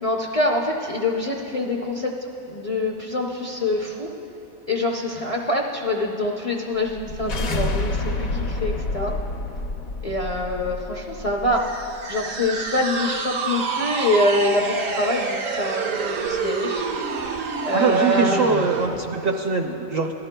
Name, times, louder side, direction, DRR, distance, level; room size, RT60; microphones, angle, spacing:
voice 1, 0.0-2.1 2.5-4.1 4.7-9.2 10.0-11.7 12.1-16.9 17.6-18.5, left 1 dB, 40° left, -1 dB, 0.5 m, -25 dB
sound 1, 6.9-12.0, left 2 dB, 80° left, 1.2 m, -28 dB
sound 2, 11.5-19.0, right 4 dB, 75° right, 1.1 m, -28 dB
voice 2, 17.7-20.1, right 4 dB, 55° right, 2 dB, 0.7 m, -22 dB
18.0 x 12.5 x 2.2 m, 3.0 s
omnidirectional pair, 1.4 m